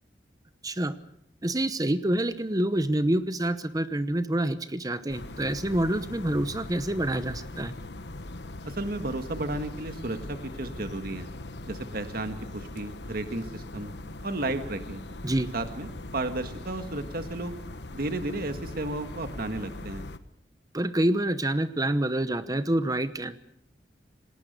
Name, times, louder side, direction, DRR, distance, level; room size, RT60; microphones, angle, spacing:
voice 1, 0.6-1.0 1.4-7.7 15.2-15.5 20.7-23.4, right 1 dB, 20° right, 12 dB, 0.9 m, -27 dB
sound 1, 5.1-20.2, left 2 dB, 70° left, 1.3 m, -40 dB
voice 2, 8.6-11.3 11.7-13.9 14.2-15.0 15.5-17.5 17.9-20.0, right 2 dB, 60° right, 8 dB, 1.6 m, -33 dB
27.5 x 19.0 x 6.6 m, 0.70 s
head